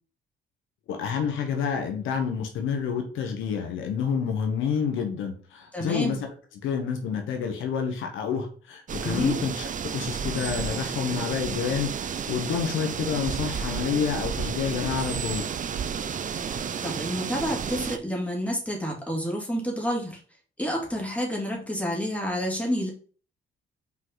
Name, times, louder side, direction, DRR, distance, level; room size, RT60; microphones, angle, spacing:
voice 1, 0.9-6.2 6.6-15.5, left 7 dB, 85° left, 4 dB, 1.4 m, -29 dB
voice 2, 5.7-6.2 9.0-9.4 16.4-20.2 20.6-22.9, equal, 5° left, -2 dB, 2.5 m, -29 dB
sound 1, 8.9-18.0, right 7 dB, 40° right, 0.6 m, -31 dB
5.6 x 4.8 x 4.1 m, 0.40 s
cardioid pair, 90°, 20 cm